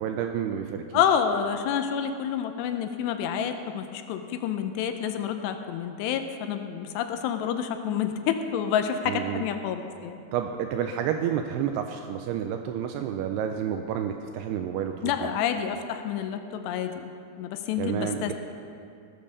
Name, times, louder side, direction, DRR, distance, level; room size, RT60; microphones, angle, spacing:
voice 1, 0.0-0.8 9.1-9.4 10.3-15.3 17.8-18.3, right 9 dB, 85° right, 5 dB, 2.4 m, -30 dB
voice 2, 0.9-10.2 15.0-17.1 17.4-18.3, left 8 dB, 85° left, 7 dB, 2.7 m, -28 dB
18.0 x 7.0 x 6.7 m, 2.4 s
omnidirectional pair, 5.1 m